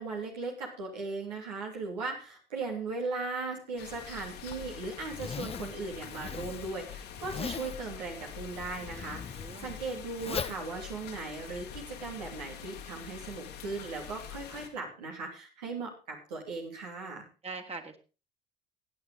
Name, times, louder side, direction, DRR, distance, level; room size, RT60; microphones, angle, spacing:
voice 1, 0.0-17.3, right 3 dB, 85° right, 0 dB, 2.6 m, -38 dB
sound 1, 3.8-14.7, left 8 dB, 75° left, 2.1 m, -45 dB
Zipper (clothing), 4.4-11.8, left 6 dB, 30° left, 0.7 m, -41 dB
voice 2, 9.3-9.8 17.4-18.0, right 3 dB, 30° right, 4 dB, 2.3 m, -41 dB
16.5 x 8.8 x 3.8 m, 0.33 s
hypercardioid pair, 55°, 21 cm